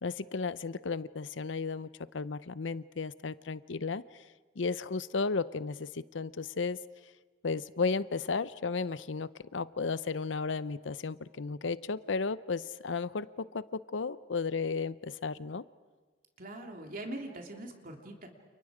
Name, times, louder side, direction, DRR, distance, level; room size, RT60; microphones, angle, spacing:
voice 1, 0.0-4.2 4.6-6.8 7.4-15.6, left 4 dB, 75° left, 16 dB, 0.7 m, -34 dB
voice 2, 16.4-18.3, right 1 dB, 50° right, 2 dB, 3.0 m, -42 dB
30.0 x 29.0 x 5.0 m, 1.3 s
head